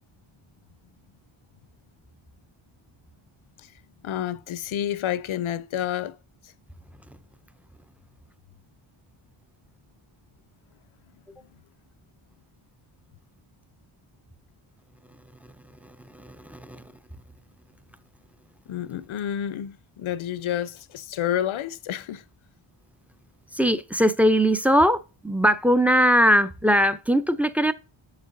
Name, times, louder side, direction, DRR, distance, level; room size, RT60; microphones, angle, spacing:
voice 1, 4.0-6.2 6.4-6.5 18.7-22.2, left 10 dB, 75° left, 0.6 m, -29 dB
voice 2, 15.8-16.8 23.5-27.7, equal, 5° right, 0.4 m, -21 dB
7.1 x 6.5 x 2.6 m
wide cardioid pair, 95°, 50 cm